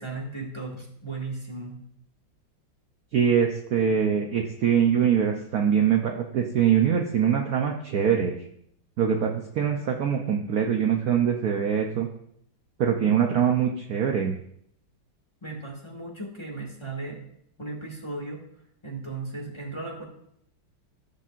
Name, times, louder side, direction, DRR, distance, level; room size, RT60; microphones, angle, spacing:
voice 1, 0.0-1.8 15.4-17.2 17.6-18.4 18.8-20.0, right 3 dB, 15° left, -2 dB, 1.7 m, -36 dB
voice 2, 3.1-8.3 9.0-12.1 12.8-14.3, right 8 dB, 65° right, 3 dB, 1.0 m, -23 dB
14.5 x 7.4 x 2.5 m, 0.70 s
omnidirectional pair, 2.2 m